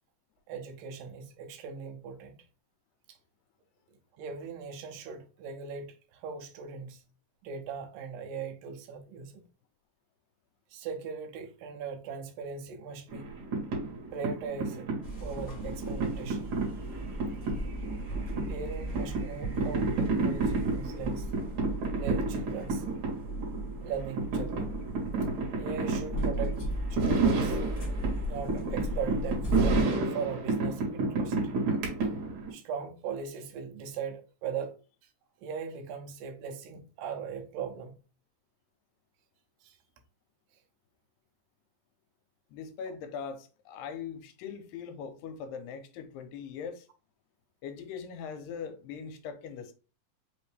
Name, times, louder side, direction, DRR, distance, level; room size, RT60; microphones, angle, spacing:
voice 1, 0.5-2.4 3.1-3.2 4.2-7.0 7.4-9.4 10.7-13.3 14.1-14.9 15.2-16.5 18.5-21.3 21.9-22.8 23.8-24.7 25.6-26.6 26.9-27.6 28.3-31.4 32.5-34.8 35.4-37.9 39.6-39.8 42.9-43.0, right 6 dB, 80° right, 2.4 m, -39 dB
sound 1, 13.1-32.5, right 3 dB, 65° right, 2.7 m, -31 dB
sound 2, 15.0-29.8, right 1 dB, 35° left, 1.0 m, -36 dB
voice 2, 42.5-46.9 47.6-49.7, left 6 dB, 80° left, 2.3 m, -41 dB
5.6 x 2.6 x 3.3 m
omnidirectional pair, 4.1 m